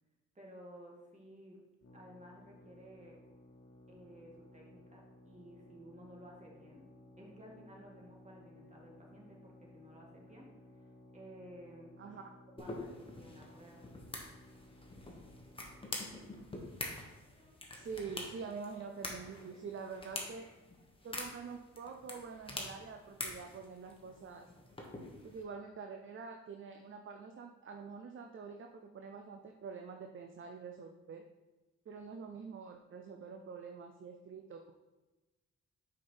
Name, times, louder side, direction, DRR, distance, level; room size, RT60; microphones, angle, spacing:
voice 1, 0.3-1.6 1.9-3.2 3.9-6.9 7.2-10.5 10.8-10.9 11.1-11.9 12.6-13.9, equal, 25° right, -2 dB, 2.2 m, -55 dB
sound 1, 1.8-16.3, left 1 dB, 55° left, 1.3 m, -59 dB
sound 2, 12.6-25.4, left 1 dB, 20° left, 1.5 m, -46 dB
voice 2, 17.7-20.5 21.0-24.5 25.2-31.2 31.9-34.7, right 5 dB, 45° right, 4 dB, 0.6 m, -46 dB
5.6 x 4.4 x 5.0 m, 1.1 s
cardioid pair, 65°, 29 cm